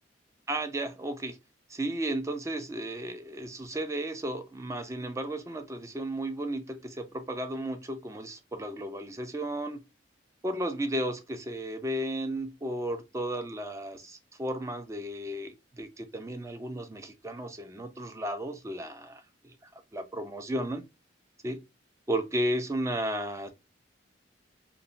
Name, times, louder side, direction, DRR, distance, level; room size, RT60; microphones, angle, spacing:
voice 1, 0.5-1.4 1.7-9.8 10.4-19.2 19.6-20.8 21.4-21.6 22.1-23.5, right 1 dB, 15° right, 0.4 m, -34 dB
2.9 x 2.1 x 2.5 m
head